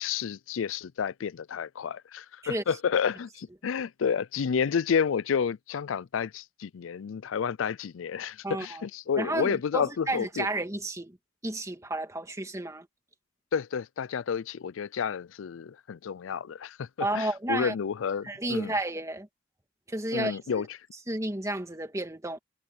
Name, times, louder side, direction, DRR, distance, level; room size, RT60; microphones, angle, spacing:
voice 1, 0.0-10.5 13.5-18.7 20.1-20.7, left 6 dB, 90° left, 0.4 m, -30 dB
voice 2, 8.4-8.8 9.2-11.2 11.4-12.9 17.0-17.7 18.2-19.3 19.9-20.4 21.1-22.4, right 1 dB, 15° right, 2.2 m, -31 dB
head